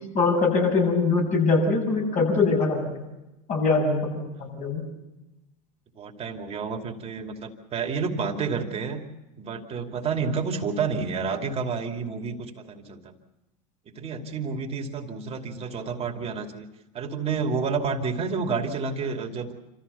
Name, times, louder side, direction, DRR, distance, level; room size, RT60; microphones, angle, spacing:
voice 1, 0.1-3.0 3.5-4.8, left 3 dB, 40° left, 0 dB, 7.7 m, -23 dB
voice 2, 6.0-9.0 9.4-13.1 14.0-16.7 16.9-19.5, right 5 dB, 30° right, 3 dB, 2.7 m, -30 dB
27.0 x 14.5 x 7.0 m, 0.98 s
hypercardioid pair, 100°, 19 cm